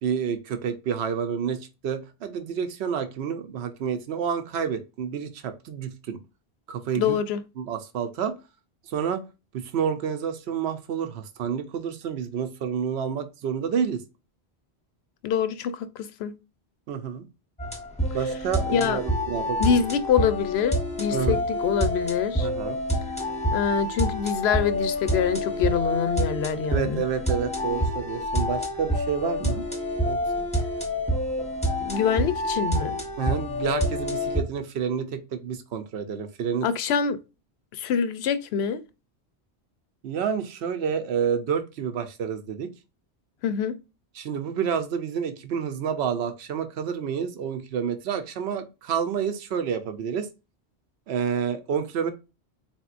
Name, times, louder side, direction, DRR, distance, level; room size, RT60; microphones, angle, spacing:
voice 1, 0.0-6.2 6.7-7.2 7.6-8.3 8.9-9.2 9.5-14.0 16.9-17.3 18.1-19.8 21.1-21.4 22.4-22.8 26.7-29.6 30.1-30.5 33.2-36.7 40.0-42.7 44.2-50.3 51.1-52.1, right 7 dB, 75° right, 0.9 m, -29 dB
voice 2, 6.9-7.4 15.2-16.3 18.7-19.0 19.6-22.5 23.5-27.0 31.8-33.0 36.6-37.2 37.7-38.8 43.4-43.7, left 7 dB, 75° left, 0.8 m, -25 dB
sound 1, 17.6-34.4, equal, 5° left, 0.9 m, -27 dB
4.2 x 3.6 x 2.4 m
omnidirectional pair, 1.1 m